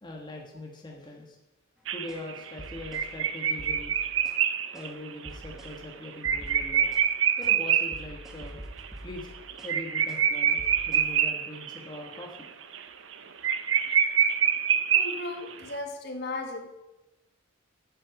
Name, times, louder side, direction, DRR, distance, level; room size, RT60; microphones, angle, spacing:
voice 1, 0.0-1.4 1.9-3.9 4.7-7.0 7.4-8.6 9.0-9.3 9.6-10.6 10.9-12.5, left 1 dB, 20° left, 0 dB, 1.4 m, -41 dB
sound 1, 1.9-8.0 8.4-8.5 8.8-8.9 9.2-11.8 12.1-12.5 12.7-12.8 13.1-13.2 13.4-15.5, right 8 dB, 65° right, 0.7 m, -26 dB
sound 2, 2.1-2.3 2.6-3.1 3.6-4.4 4.7-4.9 5.2-5.8 6.2-7.1 7.4-7.6 7.9-9.8 10.1-10.3 10.6-11.1, equal, ahead, 1.5 m, -45 dB
voice 2, 14.9-16.7, left 2 dB, 55° left, 3 dB, 1.7 m, -36 dB
8.8 x 7.7 x 7.9 m, 1.0 s
head